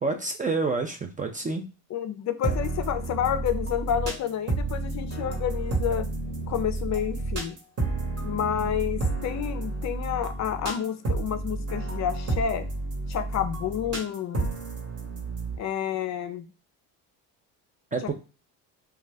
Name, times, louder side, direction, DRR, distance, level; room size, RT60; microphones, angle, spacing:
voice 1, 0.0-1.7 17.9-18.1, right 3 dB, 20° right, 4 dB, 0.4 m, -28 dB
voice 2, 1.9-6.1 6.5-7.6 8.2-12.7 13.1-14.5 15.6-16.5, left 9 dB, 45° left, 9 dB, 0.5 m, -29 dB
sound 1, 2.4-15.6, right 2 dB, 35° right, 1.1 m, -31 dB
2.4 x 2.3 x 3.2 m, 0.32 s
supercardioid pair, 95°, 40 cm